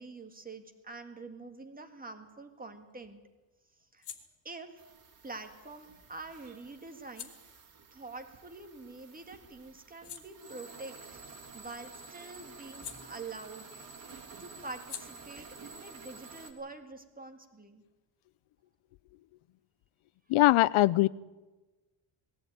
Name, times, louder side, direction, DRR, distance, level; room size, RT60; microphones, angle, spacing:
voice 1, 0.0-3.2 3.9-4.1 4.4-4.8 5.2-7.6 7.9-13.8 14.4-17.8, right 3 dB, 15° right, 6 dB, 2.0 m, -46 dB
sound 1, 2.2-9.1 9.5-13.8 14.0-17.4, left 8 dB, 55° left, 2.3 m, -53 dB
sound 2, 4.8-16.5, right 4 dB, 45° right, 2.9 m, -51 dB
voice 2, 20.3-21.1, left 17 dB, 80° left, 19 dB, 0.7 m, -22 dB
20.5 x 15.5 x 9.4 m, 1.2 s
cardioid pair, 165°, 48 cm